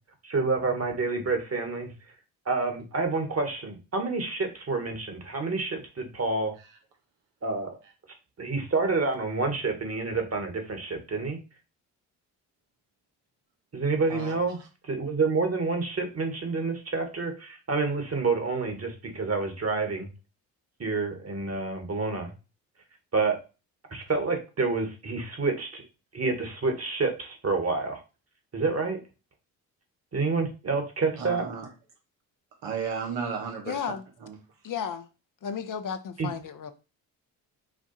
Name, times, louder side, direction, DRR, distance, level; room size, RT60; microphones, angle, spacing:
voice 1, 0.2-1.9 2.4-6.5 7.4-7.8 8.4-11.4 13.7-14.6 14.8-20.1 20.8-22.3 23.1-23.4 23.9-25.8 26.1-28.0 28.5-29.0 30.1-31.5 36.2-36.3, right 3 dB, 35° right, 1.7 m, -28 dB
voice 2, 31.1-31.7 32.6-33.8 34.2-34.4, right 6 dB, 80° right, 1.4 m, -33 dB
voice 3, 33.6-34.0 34.6-35.1 35.4-36.7, left 7 dB, 45° left, 0.7 m, -33 dB
5.1 x 2.4 x 4.1 m
hypercardioid pair, 50°, 43 cm